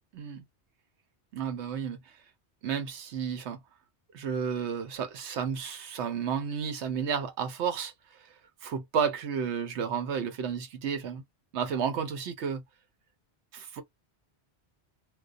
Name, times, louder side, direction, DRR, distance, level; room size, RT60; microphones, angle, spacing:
voice 1, 0.1-0.4 1.3-2.0 2.6-3.6 4.1-7.9 8.6-11.2 11.5-12.6 13.5-13.8, right 7 dB, 85° right, 1.0 m, -32 dB
2.3 x 2.2 x 2.4 m
omnidirectional pair, 1.1 m